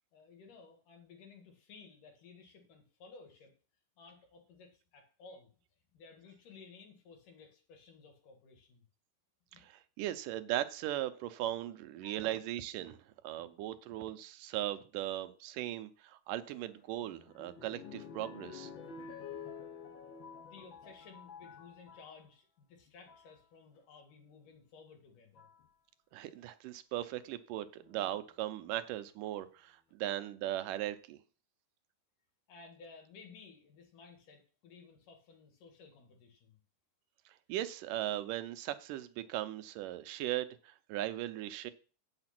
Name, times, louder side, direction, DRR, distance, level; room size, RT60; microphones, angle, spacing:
voice 1, 0.1-3.5 4.0-5.5 5.9-8.9 9.5-9.7 12.0-12.2 20.0-25.5 32.5-36.6, left 4 dB, 80° left, 3 dB, 3.6 m, -56 dB
voice 2, 9.6-18.7 26.1-31.2 37.5-41.7, right 13 dB, 90° right, 11 dB, 2.3 m, -38 dB
sound 1, 16.5-22.1 22.9-23.3 24.5-24.6 25.3-25.7 27.8-28.4 29.1-29.2 29.4-29.5, left 6 dB, 60° left, 1.3 m, -50 dB
8.8 x 6.6 x 6.0 m, 0.38 s
omnidirectional pair, 3.7 m